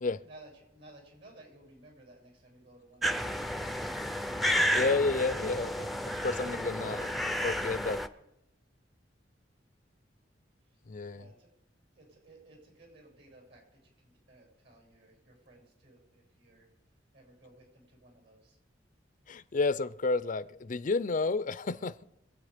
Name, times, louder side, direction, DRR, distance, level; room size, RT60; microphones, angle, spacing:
voice 1, 0.2-3.9 10.6-10.8 11.1-11.5 11.9-16.7 17.1-18.6, right 2 dB, 70° right, 7.6 m, -57 dB
sound 1, 3.0-8.1, equal, ahead, 0.5 m, -31 dB
voice 2, 4.4-5.9 6.2-7.1 7.4-8.0 10.9-11.2 19.3-22.0, left 3 dB, 45° left, 0.5 m, -31 dB
24.0 x 8.8 x 5.1 m
head